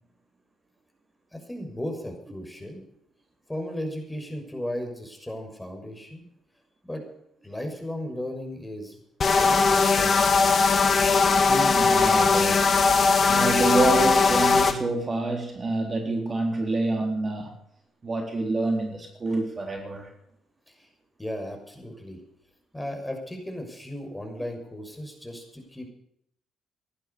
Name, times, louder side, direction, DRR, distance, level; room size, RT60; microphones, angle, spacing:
voice 1, 1.3-2.8 3.5-6.3 6.8-7.0 7.4-9.0 9.3-10.3 20.7-20.9 21.2-22.2 22.7-25.9, left 1 dB, 10° left, 4 dB, 6.4 m, -36 dB
sound 1, 9.2-14.7, left 4 dB, 45° left, 2.2 m, -20 dB
voice 2, 11.5-12.7 13.3-17.6 18.0-20.1, right 2 dB, 40° right, 2 dB, 3.9 m, -27 dB
16.0 x 11.5 x 6.9 m, 0.72 s
hypercardioid pair, 50°, 0 cm